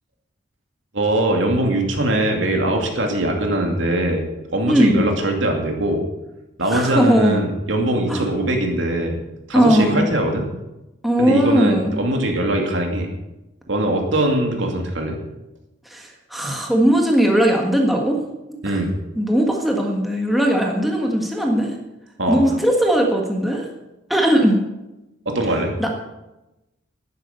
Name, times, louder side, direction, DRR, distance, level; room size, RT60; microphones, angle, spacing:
voice 1, 0.9-4.3 4.5-6.0 6.6-9.2 9.5-10.5 11.2-13.1 13.7-15.2 18.6-18.9 22.2-22.4 25.3-25.7, right 1 dB, 75° right, 2 dB, 2.5 m, -21 dB
voice 2, 4.7-5.0 6.7-7.4 8.1-8.2 9.5-10.1 11.0-12.0 15.9-18.2 18.7-18.8 19.1-21.7 22.3-23.7 24.1-24.6 25.8-26.1, equal, ahead, 0 dB, 1.5 m, -18 dB
11.5 x 10.0 x 6.8 m, 0.98 s
head